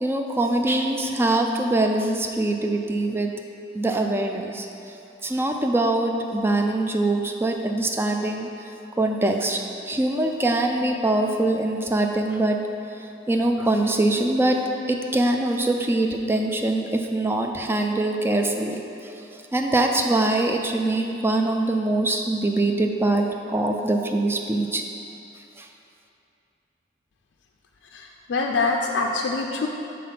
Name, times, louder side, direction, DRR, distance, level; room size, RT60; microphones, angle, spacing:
voice 1, 0.0-3.3 3.7-4.7 5.2-8.5 9.0-9.6 9.9-12.6 13.3-14.6 14.9-19.1 19.5-24.8 25.6-25.7, right 2 dB, 15° right, 3 dB, 0.3 m, -23 dB
voice 2, 27.9-29.7, left 3 dB, 70° left, 1 dB, 0.4 m, -25 dB
5.8 x 3.7 x 5.8 m, 2.7 s
head